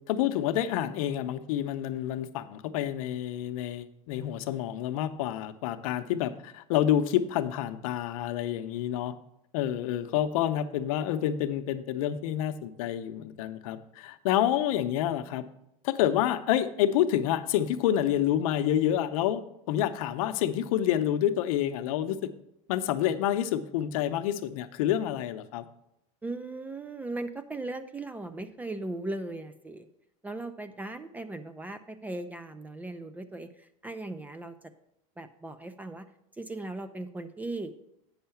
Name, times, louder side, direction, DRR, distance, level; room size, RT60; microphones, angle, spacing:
voice 1, 0.1-9.1 9.5-15.4 15.8-22.3 22.7-25.7, left 11 dB, 75° left, 9 dB, 0.7 m, -28 dB
voice 2, 26.2-29.9 30.2-34.5 35.2-36.1 36.4-37.9, right 2 dB, 10° right, 11 dB, 0.3 m, -38 dB
8.8 x 5.6 x 5.7 m, 0.79 s
supercardioid pair, 145°, 18 cm